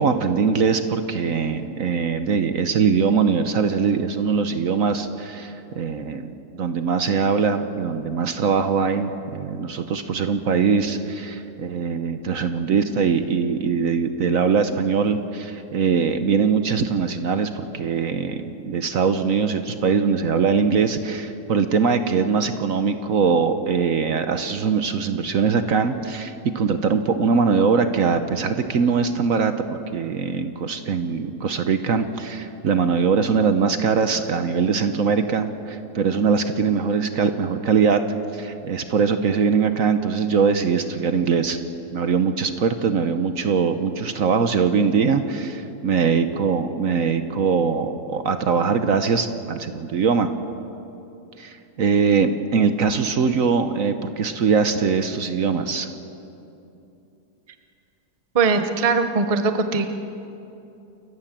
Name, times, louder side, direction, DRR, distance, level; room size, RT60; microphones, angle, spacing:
voice 1, 0.0-38.0 38.3-41.6 41.9-50.3 51.4-55.9, right 5 dB, 60° right, 9 dB, 1.2 m, -22 dB
voice 2, 58.3-59.9, right 4 dB, 25° right, 8 dB, 0.8 m, -20 dB
29.0 x 14.5 x 7.4 m, 2.8 s
omnidirectional pair, 1.8 m